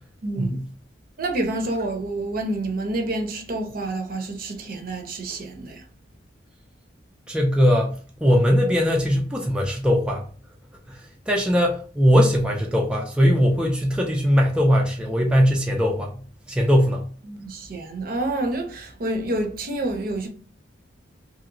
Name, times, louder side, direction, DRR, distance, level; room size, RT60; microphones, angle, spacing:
voice 1, 0.2-0.6 1.2-5.8 17.2-20.3, right 2 dB, 50° right, 0.6 m, -28 dB
voice 2, 7.3-7.9 8.2-10.3 10.9-16.1 16.5-17.0, equal, 5° right, 0.3 m, -20 dB
2.9 x 2.8 x 2.6 m
head